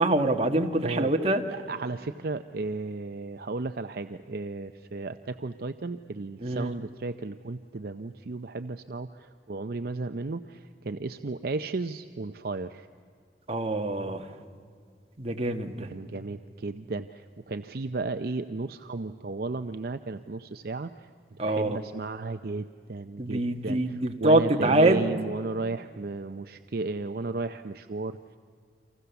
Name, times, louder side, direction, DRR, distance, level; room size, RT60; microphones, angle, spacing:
voice 1, 0.0-1.4 6.4-6.7 13.5-14.2 15.2-15.9 21.4-21.8 23.2-25.1, right 2 dB, 35° right, 4 dB, 1.5 m, -24 dB
voice 2, 1.5-12.9 15.9-21.1 21.4-28.4, right 3 dB, 60° right, 9 dB, 0.6 m, -34 dB
30.0 x 25.0 x 7.0 m, 2.1 s
head